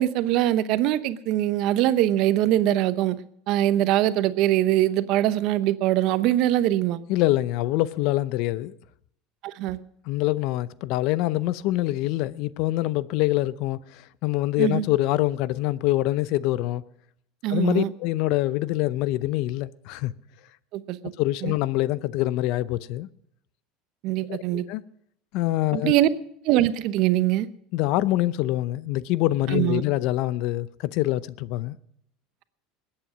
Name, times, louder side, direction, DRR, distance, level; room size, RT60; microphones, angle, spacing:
voice 1, 0.0-3.2 3.5-7.0 9.4-9.8 14.6-14.8 17.4-17.9 20.7-21.0 21.4-21.5 24.0-24.7 25.7-26.1 26.4-27.5 29.5-29.8, right 13 dB, 60° right, 0.8 m, -22 dB
voice 2, 7.1-8.8 10.1-16.8 17.5-20.1 21.2-23.1 24.3-24.8 25.3-26.0 27.7-31.8, left 16 dB, 65° left, 0.6 m, -25 dB
20.5 x 8.7 x 6.2 m
supercardioid pair, 95°, 0 cm